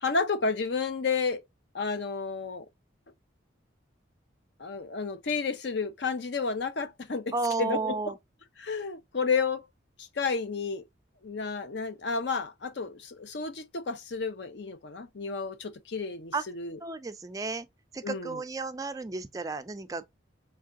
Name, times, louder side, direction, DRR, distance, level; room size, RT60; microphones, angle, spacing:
voice 1, 0.0-1.4 1.7-2.7 4.6-8.0 8.6-9.6 10.0-10.8 11.2-16.8 18.0-18.4, left 4 dB, 60° left, 0.6 m, -31 dB
voice 2, 7.3-8.2 16.3-16.4 16.8-17.7 17.9-20.0, right 3 dB, 15° right, 0.3 m, -32 dB
4.8 x 3.3 x 2.3 m
head